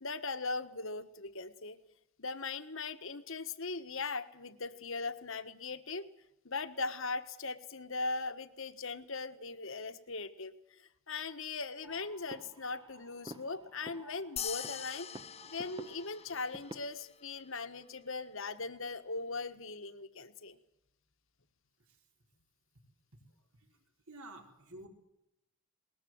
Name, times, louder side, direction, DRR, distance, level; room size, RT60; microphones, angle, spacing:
voice 1, 0.0-1.8 2.2-6.1 6.4-15.1 15.4-20.6, left 3 dB, 60° left, 11 dB, 1.5 m, -39 dB
sound 1, 11.8-16.8, right 1 dB, 20° right, 1.0 m, -51 dB
sound 2, 14.4-17.1, left 9 dB, 25° left, 0.7 m, -43 dB
voice 2, 24.1-24.9, right 1 dB, 75° right, 3 dB, 4.7 m, -49 dB
20.5 x 20.0 x 7.9 m, 0.84 s
head